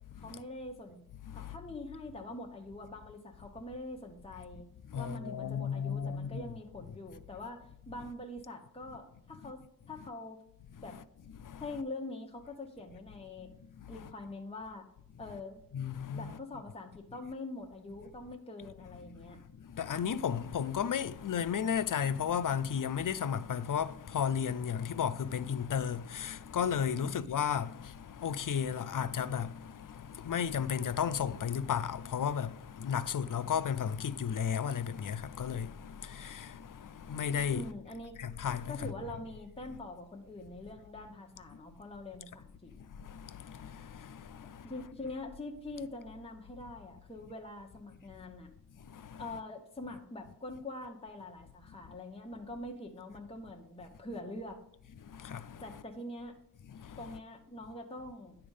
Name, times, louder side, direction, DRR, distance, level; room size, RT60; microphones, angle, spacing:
voice 1, 0.2-1.0 1.3-4.7 4.9-9.6 9.9-10.4 10.8-11.0 11.6-13.5 13.9-14.8 15.2-15.6 16.1-19.4 27.0-27.4 37.5-38.2 38.7-42.7 44.6-48.5 49.2-54.6 55.6-56.3 57.0-58.4, left 2 dB, 15° left, 0.9 m, -44 dB
voice 2, 1.3-1.6 4.9-6.5 9.4-9.5 10.8-11.0 11.4-11.6 13.7-14.1 15.7-16.4 19.1-37.7 38.2-38.9 42.8-44.7 48.8-49.2 55.0-55.6 56.7-57.0, left 7 dB, 60° left, 0.5 m, -34 dB
10.0 x 3.4 x 5.4 m
wide cardioid pair, 80°, 37 cm